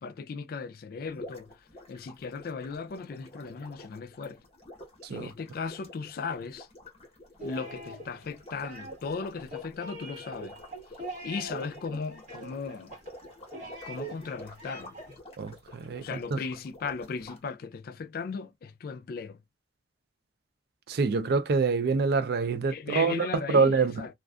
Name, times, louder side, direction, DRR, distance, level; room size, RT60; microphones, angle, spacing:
voice 1, 0.0-1.5 1.9-4.4 5.1-6.7 7.4-10.6 11.2-12.9 13.9-15.0 16.0-19.4 22.7-24.1, left 5 dB, 55° left, 0.4 m, -37 dB
sound 1, 1.1-17.4, left 1 dB, 35° left, 1.0 m, -50 dB
sound 2, 7.4-15.2, right 2 dB, 45° right, 1.3 m, -42 dB
voice 2, 15.4-16.4 20.9-24.1, right 4 dB, 60° right, 0.4 m, -26 dB
2.4 x 2.4 x 2.3 m
head